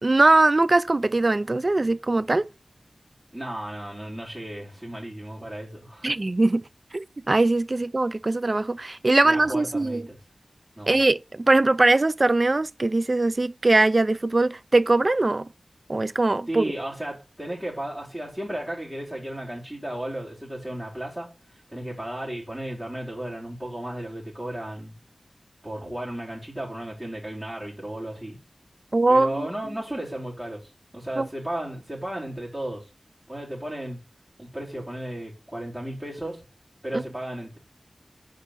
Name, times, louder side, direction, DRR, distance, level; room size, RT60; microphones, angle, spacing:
voice 1, 0.0-2.5 6.0-6.6 6.9-10.1 10.9-15.5 15.9-16.6 28.9-29.5 31.2-31.3 36.9-37.0, right 2 dB, 40° right, 0.4 m, -21 dB
voice 2, 3.3-6.1 9.2-10.2 10.8-11.0 16.5-24.9 25.6-28.4 29.1-32.9 33.3-34.0 34.4-36.4 36.8-37.6, right 1 dB, 15° right, 3.6 m, -34 dB
5.4 x 5.0 x 5.7 m
wide cardioid pair, 65°, 0 cm